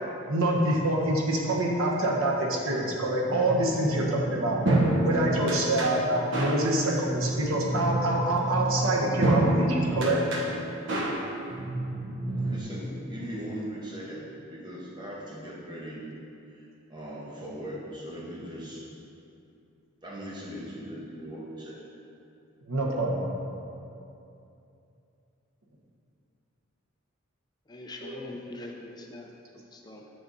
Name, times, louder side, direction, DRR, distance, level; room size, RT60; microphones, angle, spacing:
voice 1, 0.3-4.6 5.0-10.2 22.7-23.3 28.0-28.2, right 1 dB, 90° right, -2 dB, 1.1 m, -26 dB
sound 1, 3.3-12.6, right 1 dB, 60° right, 1.0 m, -28 dB
voice 2, 12.4-16.1 16.5-18.9 20.0-21.9, equal, 20° right, -5 dB, 1.2 m, -39 dB
voice 3, 27.7-30.1, left 2 dB, 20° left, 1 dB, 0.5 m, -43 dB
6.7 x 6.7 x 4.0 m, 2.7 s
head